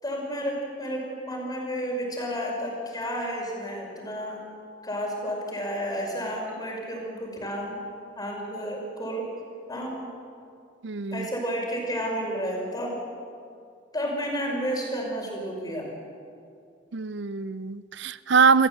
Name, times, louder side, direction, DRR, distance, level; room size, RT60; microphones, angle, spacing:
voice 1, 0.0-4.4 4.8-7.8 8.2-9.3 9.7-10.1 11.1-13.0 13.9-15.9, equal, 20° left, 5.9 m, -31 dB
voice 2, 10.8-11.3 16.9-18.7, right 5 dB, 70° right, 0.5 m, -23 dB
28.5 x 15.0 x 8.8 m
head